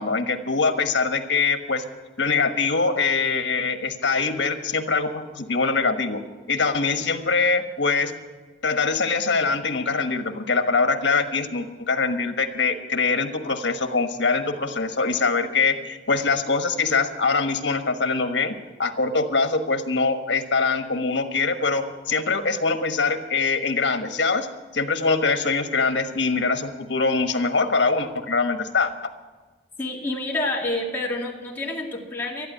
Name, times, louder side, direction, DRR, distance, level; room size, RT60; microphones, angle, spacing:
voice 1, 0.0-1.8 2.2-6.2 6.5-8.1 8.6-24.5 24.7-28.9, left 4 dB, 75° left, 8 dB, 1.3 m, -23 dB
voice 2, 29.8-32.5, left 2 dB, 10° left, -3 dB, 2.3 m, -28 dB
12.0 x 12.0 x 9.6 m, 1.3 s
head